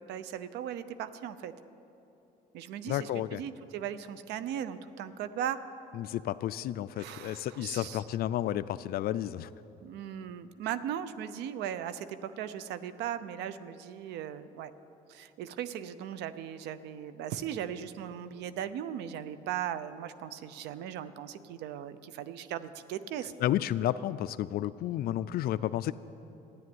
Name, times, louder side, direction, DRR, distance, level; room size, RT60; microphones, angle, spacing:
voice 1, 0.0-1.5 2.5-5.6 7.0-8.0 9.8-14.7 15.1-23.3, right 10 dB, 85° right, 14 dB, 0.7 m, -38 dB
voice 2, 2.9-3.4 6.0-9.5 23.4-25.9, left 12 dB, 65° left, 14 dB, 0.4 m, -31 dB
13.5 x 10.5 x 9.5 m, 2.9 s
cardioid pair, 110°, 17 cm